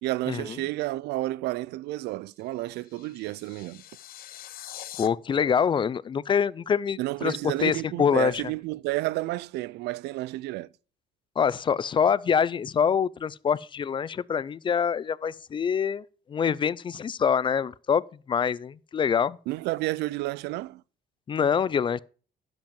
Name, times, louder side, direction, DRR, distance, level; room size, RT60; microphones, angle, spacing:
voice 1, 0.0-3.8 7.0-10.7 19.5-20.8, right 18 dB, 80° right, 0.4 m, -31 dB
sound 1, 2.4-5.1, left 12 dB, 60° left, 0.7 m, -44 dB
voice 2, 5.0-8.4 11.4-16.0 16.3-18.0 18.3-19.4 21.3-22.0, left 7 dB, 30° left, 0.4 m, -25 dB
11.5 x 5.3 x 5.2 m
cardioid pair, 110°, 17 cm